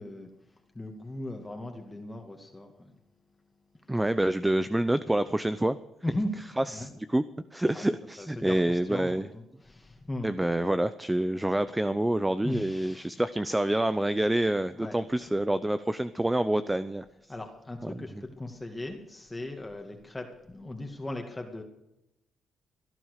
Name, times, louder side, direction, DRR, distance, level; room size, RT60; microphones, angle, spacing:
voice 1, 0.0-3.0 3.7-4.0 6.0-6.3 6.7-6.9 7.7-7.8 8.2-10.4 12.4-13.2 13.6-13.7 14.7-15.0 17.3-21.6, left 1 dB, 15° left, 3 dB, 2.2 m, -38 dB
voice 2, 3.9-5.8 6.8-7.2 7.5-9.3 10.2-17.0 17.8-17.9, right 1 dB, 10° right, 13 dB, 0.7 m, -27 dB
17.5 x 11.0 x 6.6 m, 0.88 s
cardioid pair, 80°, 0 cm